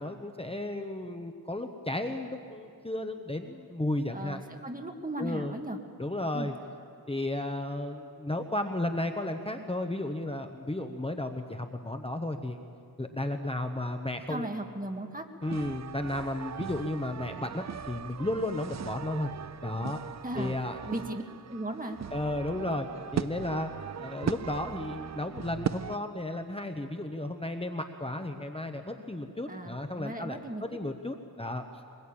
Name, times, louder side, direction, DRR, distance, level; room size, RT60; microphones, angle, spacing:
voice 1, 0.0-4.4 5.2-5.5 6.0-6.5 7.1-12.6 13.0-14.5 15.4-19.3 19.6-20.0 20.4-20.8 22.1-31.6, left 1 dB, 15° left, 5 dB, 1.1 m, -33 dB
voice 2, 4.1-5.8 6.3-6.5 14.3-15.3 20.2-20.6 20.9-21.2 21.5-22.0 29.5-30.6, right 1 dB, 25° right, 4 dB, 1.9 m, -36 dB
sound 1, 15.4-26.0, right 8 dB, 50° right, 0.5 m, -38 dB
23.5 x 20.5 x 8.8 m, 2.4 s
wide cardioid pair, 100°, 36 cm